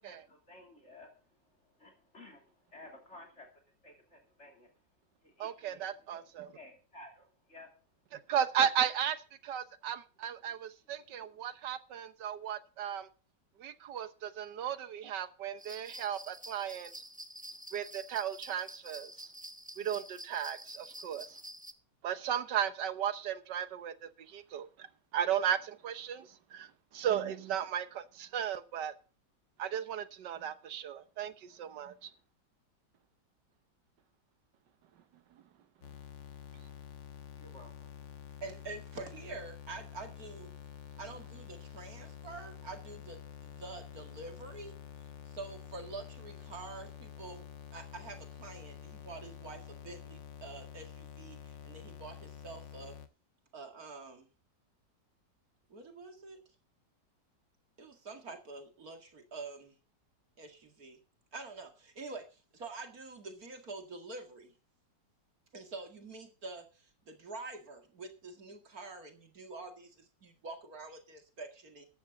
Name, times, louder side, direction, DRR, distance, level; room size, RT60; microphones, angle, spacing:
voice 1, 0.0-3.5 3.8-4.7 5.2-5.8 6.1-7.7 10.9-11.3 37.4-38.2, left 1 dB, 40° left, 3.3 m, -55 dB
voice 2, 5.4-6.5 8.1-13.1 13.6-16.9 17.7-19.3 19.8-21.4 22.0-24.9 25.1-28.9 29.6-32.1, right 9 dB, 75° right, 1.6 m, -35 dB
sound 1, 15.6-21.7, right 1 dB, 10° right, 0.5 m, -48 dB
sound 2, 35.8-53.1, left 9 dB, 90° left, 2.1 m, -49 dB
voice 3, 38.4-40.5 41.0-44.7 45.2-47.4 47.7-52.9 53.5-54.3 55.7-56.4 57.8-59.7 60.4-61.0 61.3-64.5 65.5-71.9, right 3 dB, 55° right, 2.5 m, -46 dB
13.5 x 11.0 x 3.9 m
omnidirectional pair, 1.9 m